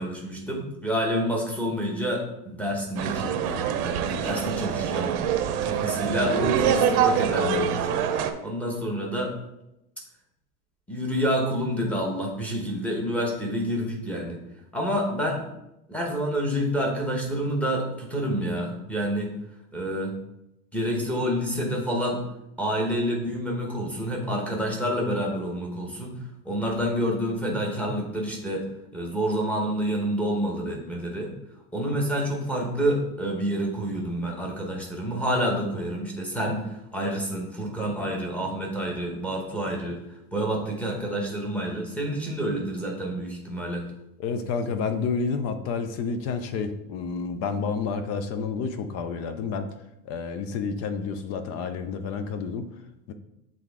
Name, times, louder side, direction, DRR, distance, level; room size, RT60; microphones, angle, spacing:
voice 1, 0.0-5.1 5.6-7.9 8.4-9.3 10.9-14.4 14.7-15.4 15.9-19.3 19.7-20.1 20.7-22.2 22.6-26.2 26.4-28.7 28.9-31.3 31.7-40.0 40.3-43.9, equal, 5° left, -1 dB, 1.0 m, -28 dB
sound 1, 3.0-8.3, right 8 dB, 65° right, 0.8 m, -25 dB
voice 2, 44.2-49.7 50.1-52.7 53.1-53.2, left 5 dB, 35° left, 9 dB, 0.4 m, -29 dB
7.6 x 3.6 x 3.6 m, 0.86 s
supercardioid pair, 150°, 47 cm